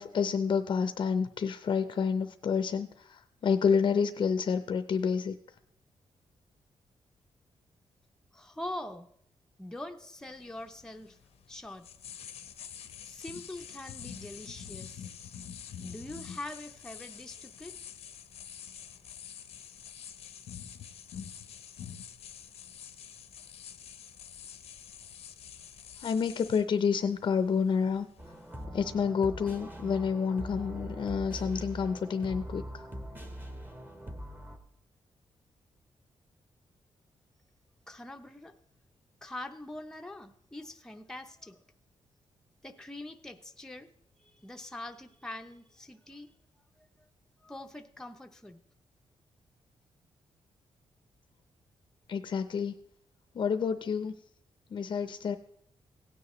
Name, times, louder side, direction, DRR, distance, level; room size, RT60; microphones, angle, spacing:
voice 1, 0.0-5.4 26.0-28.1 28.7-32.8 52.1-52.7 53.3-54.1 54.7-55.4, left 6 dB, 50° left, 10 dB, 0.6 m, -29 dB
voice 2, 8.3-9.1 9.6-11.2 11.5-11.9 13.0-15.1 15.8-17.8 37.9-38.6 39.2-41.6 42.6-43.9 44.2-46.3 46.8-47.1 47.4-48.6, left 1 dB, 5° left, 4 dB, 0.6 m, -43 dB
sound 1, 10.2-28.6, left 8 dB, 90° left, 0.8 m, -47 dB
sound 2, 28.2-34.6, equal, 20° right, 1.1 m, -42 dB
16.5 x 9.5 x 3.0 m, 0.69 s
wide cardioid pair, 135°, 10 cm